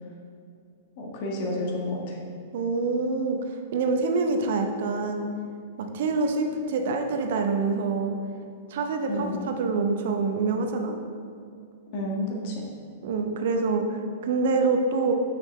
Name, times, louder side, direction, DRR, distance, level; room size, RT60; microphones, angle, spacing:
voice 1, 1.0-2.2 9.1-9.5 11.9-12.6, left 1 dB, 50° left, -1 dB, 1.5 m, -30 dB
voice 2, 2.5-3.4 3.7-5.3 5.8-8.2 8.7-10.9 13.0-15.1, right 4 dB, 60° right, 4 dB, 0.8 m, -26 dB
7.0 x 6.3 x 3.2 m, 2.4 s
figure-of-eight pair, 105°, 0 cm